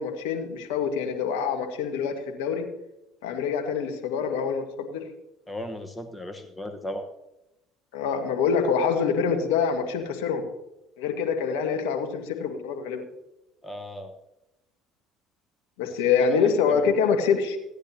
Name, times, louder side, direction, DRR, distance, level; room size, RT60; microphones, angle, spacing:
voice 1, 0.0-2.1 2.4-2.7 3.2-5.0 7.9-10.4 11.0-13.0 15.8-17.6, left 6 dB, 80° left, 3 dB, 1.7 m, -25 dB
voice 2, 5.5-7.1 13.6-14.1 15.8-15.9 16.2-16.9, left 1 dB, 10° left, 6 dB, 1.2 m, -37 dB
16.5 x 10.0 x 2.9 m, 0.91 s
hypercardioid pair, 65°, 0 cm